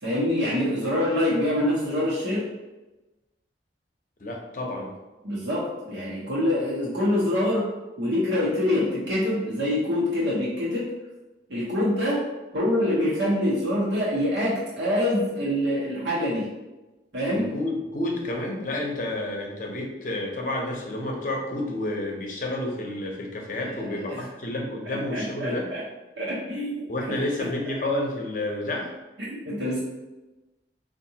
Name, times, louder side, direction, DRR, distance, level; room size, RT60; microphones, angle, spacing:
voice 1, 0.0-2.5 5.2-7.7 8.0-10.9 11.5-12.2 12.5-16.5 17.1-17.5 23.6-23.8 24.8-25.8 26.2-27.2 29.3-29.8, left 1 dB, 80° right, -7 dB, 1.0 m, -25 dB
voice 2, 4.2-4.9 17.3-25.7 26.9-28.9, left 1 dB, 45° left, 0 dB, 0.7 m, -30 dB
4.6 x 2.5 x 2.8 m, 1.1 s
head